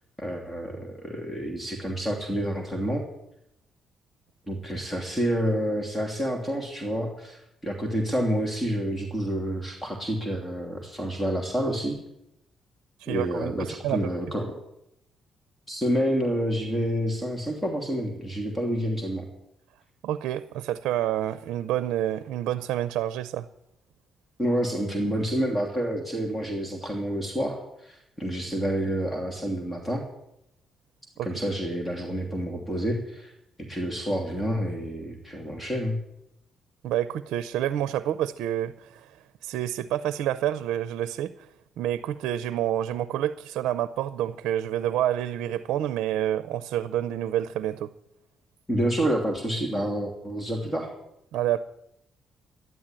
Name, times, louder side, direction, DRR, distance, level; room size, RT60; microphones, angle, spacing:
voice 1, 0.2-3.1 4.5-12.0 13.1-14.5 15.7-19.3 24.4-30.0 31.2-33.3 33.6-36.0 48.7-50.9, equal, 15° left, 1 dB, 2.8 m, -28 dB
voice 2, 13.0-14.1 20.0-23.5 31.2-31.3 36.8-39.2 39.4-41.5 41.8-47.9 51.3-51.6, right 11 dB, 85° right, 14 dB, 0.5 m, -28 dB
12.5 x 11.0 x 8.9 m, 0.82 s
cardioid pair, 90°, 0 cm